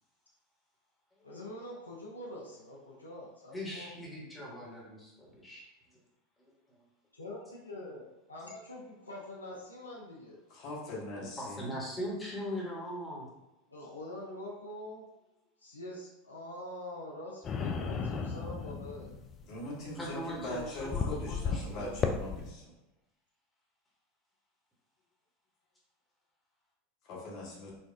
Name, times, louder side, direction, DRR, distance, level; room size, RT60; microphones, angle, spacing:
voice 1, 1.2-3.9 7.1-10.4 13.7-15.1 15.6-19.1, left 1 dB, 85° left, -3 dB, 0.5 m, -45 dB
voice 2, 3.5-6.0 11.4-13.3 19.9-22.2, equal, 10° left, -5 dB, 1.2 m, -40 dB
voice 3, 10.5-11.8 19.5-22.7 27.0-27.7, left 1 dB, 50° left, -4 dB, 1.1 m, -41 dB
sound 1, 17.4-22.5, left 5 dB, 30° left, 0.3 m, -35 dB
4.2 x 2.3 x 2.6 m, 0.98 s
figure-of-eight pair, 80°, 0 cm